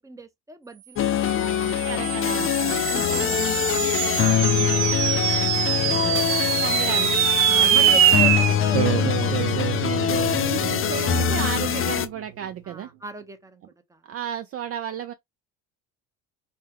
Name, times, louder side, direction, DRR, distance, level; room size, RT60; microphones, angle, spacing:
voice 1, 0.0-1.9 2.9-4.4 4.7-5.1 5.5-6.3 7.4-9.8 12.6-14.0, right 1 dB, 10° right, 0.8 m, -39 dB
sound 1, 1.0-12.1, left 9 dB, 35° left, 0.6 m, -24 dB
sound 2, 1.3-11.9, right 13 dB, 85° right, 0.6 m, -24 dB
voice 2, 1.9-3.3 5.9-8.6 10.3-12.9 14.1-15.1, right 9 dB, 40° right, 0.5 m, -34 dB
Brass instrument, 3.0-12.5, left 15 dB, 80° left, 0.5 m, -36 dB
4.3 x 2.3 x 3.4 m
supercardioid pair, 100°, 37 cm